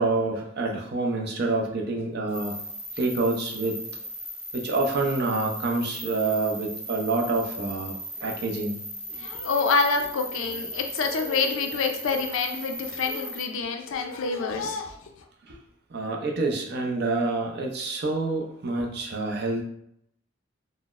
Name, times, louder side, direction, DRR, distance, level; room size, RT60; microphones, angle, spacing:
voice 1, 0.0-2.6 3.0-3.8 4.5-8.8 15.5-15.6 15.9-19.6, right 3 dB, 50° right, 0 dB, 0.5 m, -27 dB
sound 1, 2.3-13.4, right 1 dB, 5° right, 1.1 m, -37 dB
voice 2, 9.1-15.0, left 4 dB, 70° left, 5 dB, 0.4 m, -27 dB
3.9 x 2.0 x 2.4 m, 0.73 s
head